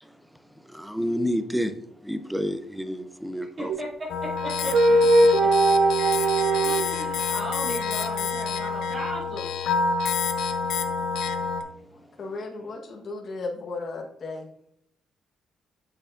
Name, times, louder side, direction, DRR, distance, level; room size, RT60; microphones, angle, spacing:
voice 1, 0.7-1.7 2.0-3.7, equal, 5° right, 0.7 m, -29 dB
voice 2, 3.6-4.8 5.4-5.5 6.6-9.5, equal, 40° right, 2.3 m, -36 dB
sound 1, 3.7-3.8 4.7-6.9, right 2 dB, 75° right, 0.6 m, -19 dB
sound 2, 4.1-11.6, left 5 dB, 80° left, 0.8 m, -28 dB
voice 3, 12.2-14.5, left 3 dB, 50° left, 1.3 m, -35 dB
8.0 x 6.7 x 2.6 m
cardioid pair, 90°, 0 cm